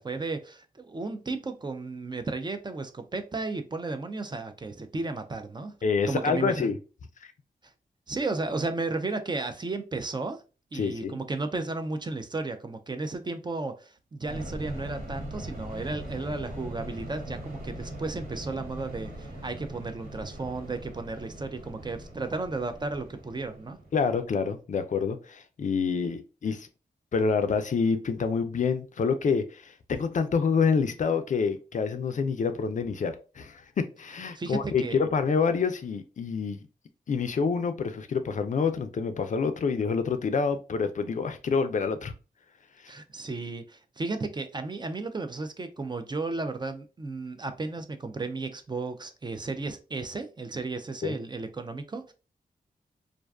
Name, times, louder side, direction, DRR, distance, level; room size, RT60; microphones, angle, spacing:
voice 1, 0.0-5.7 6.1-6.7 8.1-10.4 10.7-23.8 34.3-35.0 42.9-52.1, right 3 dB, 30° right, 0.4 m, -34 dB
voice 2, 5.8-6.8 7.2-7.3 10.7-11.2 23.9-26.7 27.1-36.6 37.1-42.1 51.0-51.2, left 5 dB, 50° left, 0.4 m, -27 dB
sound 1, 14.3-24.5, right 1 dB, 65° right, 1.0 m, -40 dB
2.4 x 2.2 x 2.2 m
cardioid pair, 55°, 16 cm